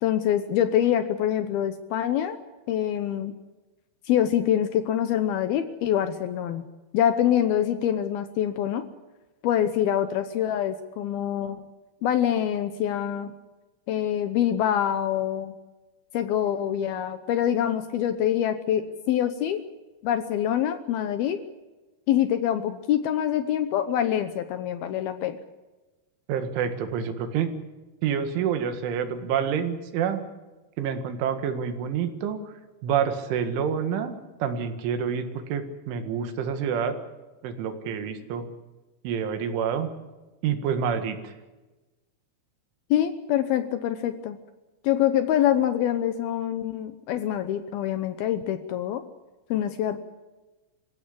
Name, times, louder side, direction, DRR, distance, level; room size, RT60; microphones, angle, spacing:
voice 1, 0.0-2.4 2.7-3.3 4.1-6.7 6.9-8.9 9.4-11.6 12.0-13.3 13.9-15.5 16.1-19.6 20.0-21.4 22.1-25.4 42.9-44.4 44.8-49.0 49.5-50.0, left 10 dB, 75° left, 10 dB, 2.4 m, -25 dB
voice 2, 26.3-27.5 28.0-30.2 30.8-32.5 32.8-34.2 34.4-37.0 37.4-38.5 39.0-39.9 40.4-41.3, right 7 dB, 85° right, 8 dB, 4.2 m, -27 dB
26.0 x 16.5 x 8.5 m, 1.1 s
omnidirectional pair, 5.4 m